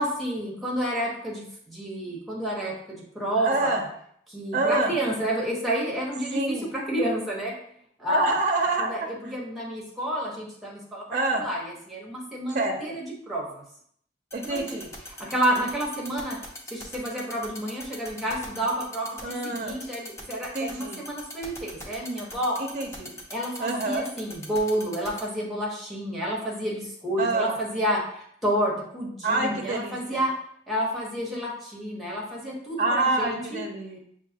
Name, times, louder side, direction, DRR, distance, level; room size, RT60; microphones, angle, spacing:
voice 1, 0.0-3.8 4.3-7.5 8.0-8.4 8.8-13.6 14.4-14.8 15.3-16.4 16.7-22.6 23.3-30.3 30.7-33.6, right 1 dB, ahead, -4 dB, 1.0 m, -30 dB
voice 2, 3.4-3.8 4.5-4.9 6.3-6.7 8.1-9.1 11.1-11.5 12.5-12.8 14.3-14.9 19.2-19.7 20.5-21.0 22.6-23.1 23.6-24.1 27.2-27.5 29.2-30.2 32.8-34.0, right 2 dB, 45° right, 2 dB, 0.4 m, -26 dB
sound 1, 14.3-25.2, left 1 dB, 15° left, 0.6 m, -39 dB
6.1 x 2.5 x 2.8 m, 0.67 s
head